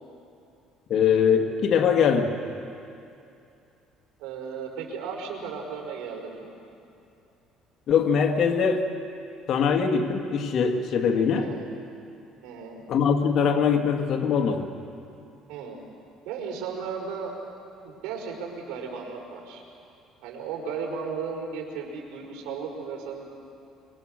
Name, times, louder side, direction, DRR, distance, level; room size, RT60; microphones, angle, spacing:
voice 1, 0.9-2.3 7.9-8.9 9.5-11.5 12.9-14.7, left 6 dB, 50° left, 4 dB, 1.8 m, -22 dB
voice 2, 4.2-6.6 11.3-11.7 12.4-12.8 15.5-15.8 16.2-17.3 17.8-19.6 20.2-23.2, right 5 dB, 85° right, 0 dB, 4.8 m, -35 dB
25.5 x 23.5 x 6.5 m, 2.6 s
cardioid pair, 120°, 0 cm